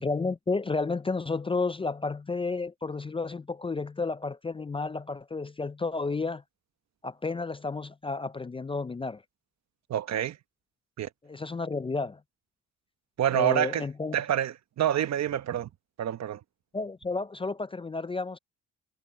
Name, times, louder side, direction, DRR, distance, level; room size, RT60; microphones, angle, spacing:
voice 1, 0.0-6.4 7.0-9.2 11.2-12.2 13.3-14.2 16.7-18.4, left 3 dB, 20° left, 0.5 m, -31 dB
voice 2, 9.9-10.4 11.0-11.1 13.2-13.9 14.1-15.7 16.0-16.4, right 11 dB, 60° right, 1.1 m, -27 dB
cardioid pair, 90°, 30 cm